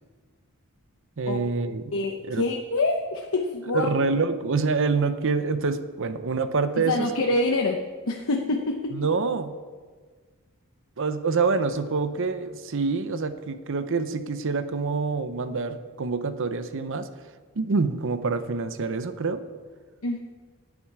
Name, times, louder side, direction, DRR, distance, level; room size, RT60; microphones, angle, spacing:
voice 1, 1.2-1.8 2.3-2.4 3.7-7.1 8.9-9.5 11.0-17.1 17.6-19.4, right 4 dB, 60° right, 11 dB, 0.7 m, -26 dB
voice 2, 1.9-3.9 6.7-9.0 20.0-20.2, left 2 dB, 65° left, 2 dB, 0.9 m, -26 dB
17.0 x 8.8 x 4.8 m, 1.5 s
head